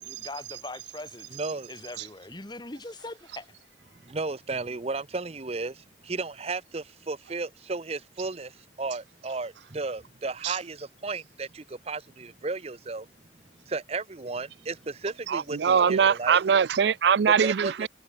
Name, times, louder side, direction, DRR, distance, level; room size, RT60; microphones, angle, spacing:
voice 1, 0.0-1.4 1.7-3.5, left 2 dB, 25° left, 2.0 m, -41 dB
voice 2, 1.3-1.7 4.1-5.7 6.1-8.5 8.8-13.0 13.7-16.4 17.4-17.9, right 3 dB, 35° right, 0.7 m, -34 dB
voice 3, 15.3-17.9, right 7 dB, 75° right, 0.4 m, -22 dB
head